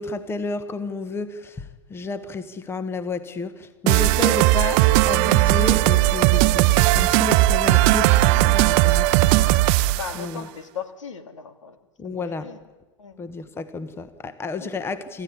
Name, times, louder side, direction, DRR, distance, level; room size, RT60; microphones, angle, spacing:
voice 1, 0.0-9.3 10.1-10.5 12.0-12.5 13.2-15.2, left 4 dB, 15° left, 1.3 m, -31 dB
sound 1, 3.9-10.1, right 17 dB, 45° right, 0.7 m, -17 dB
voice 2, 9.9-11.8 12.0-12.6 13.0-13.2 14.6-14.7, left 6 dB, 75° left, 2.7 m, -37 dB
26.5 x 14.5 x 9.9 m
hypercardioid pair, 110°, 16 cm